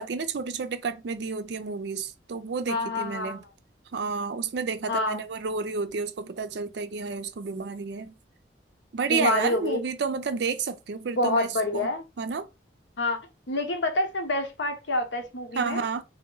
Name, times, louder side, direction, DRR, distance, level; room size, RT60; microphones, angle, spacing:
voice 1, 0.0-3.4 3.9-8.1 8.9-11.9 12.2-12.5 15.5-16.0, right 5 dB, 65° right, 0.4 m, -30 dB
voice 2, 2.7-3.4 4.9-5.2 9.1-9.8 11.2-12.0 13.0-13.2 13.5-15.8, left 2 dB, 80° left, 0.9 m, -27 dB
3.0 x 2.9 x 3.8 m
head